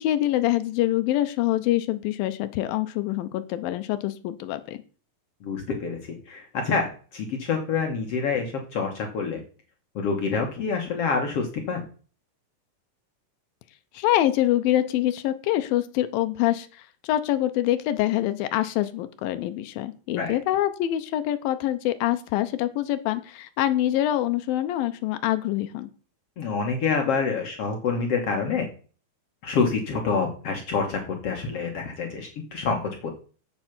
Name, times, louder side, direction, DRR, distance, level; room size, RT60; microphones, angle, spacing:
voice 1, 0.0-4.8 13.9-25.9, left 13 dB, 90° left, 10 dB, 2.5 m, -25 dB
voice 2, 5.4-9.4 10.0-11.8 20.2-20.4 26.4-28.7 29.4-33.2, left 5 dB, 60° left, 3 dB, 1.7 m, -27 dB
7.7 x 7.1 x 6.0 m, 0.40 s
omnidirectional pair, 4.2 m